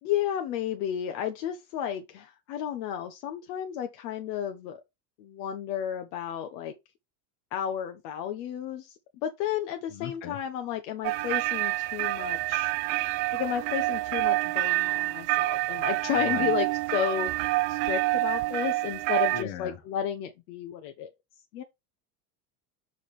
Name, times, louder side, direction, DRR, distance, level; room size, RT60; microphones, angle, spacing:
voice 1, 0.0-4.8 5.2-6.7 7.5-12.7 13.3-17.3 17.7-21.1 21.5-21.6, left 10 dB, 85° left, 1.0 m, -32 dB
voice 2, 9.9-10.4 16.2-16.5 19.3-19.8, left 10 dB, 65° left, 1.5 m, -38 dB
sound 1, 11.0-19.4, right 20 dB, 70° right, 0.6 m, -27 dB
5.2 x 5.0 x 4.2 m
supercardioid pair, 110°, 47 cm